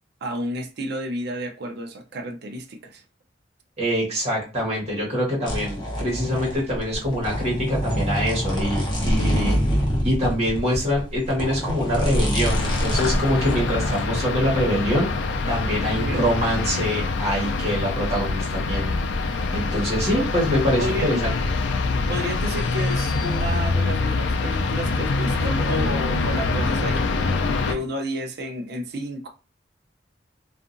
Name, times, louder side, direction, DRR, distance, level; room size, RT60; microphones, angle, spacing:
voice 1, 0.2-3.0 16.0-16.3 19.7-19.8 20.2-20.3 20.8-21.2 22.1-29.3, equal, 60° right, 0.5 m, -31 dB
voice 2, 3.8-9.6 10.0-15.1 15.5-21.3, equal, 35° right, 1.3 m, -24 dB
sound 1, 5.5-14.0, equal, 25° left, 0.8 m, -25 dB
sound 2, 12.4-27.8, left 3 dB, 70° left, 0.4 m, -25 dB
2.7 x 2.4 x 2.5 m
head